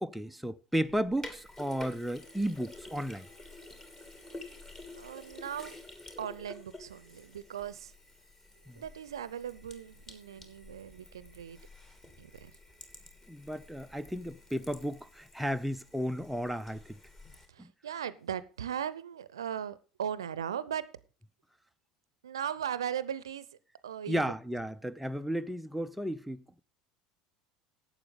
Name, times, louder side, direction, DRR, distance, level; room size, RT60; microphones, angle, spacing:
voice 1, 0.0-3.3 8.7-8.8 13.3-17.0 17.6-17.7 24.1-26.6, equal, ahead, 0.5 m, -34 dB
Sink (filling or washing), 0.8-17.5, left 2 dB, 20° left, 2.7 m, -50 dB
voice 2, 4.9-5.7 6.2-7.9 8.8-11.6 12.2-12.5 17.5-20.9 22.2-23.5 23.8-24.2, right 9 dB, 70° right, 0.7 m, -38 dB
11.5 x 8.4 x 5.2 m
figure-of-eight pair, 70°, 3 cm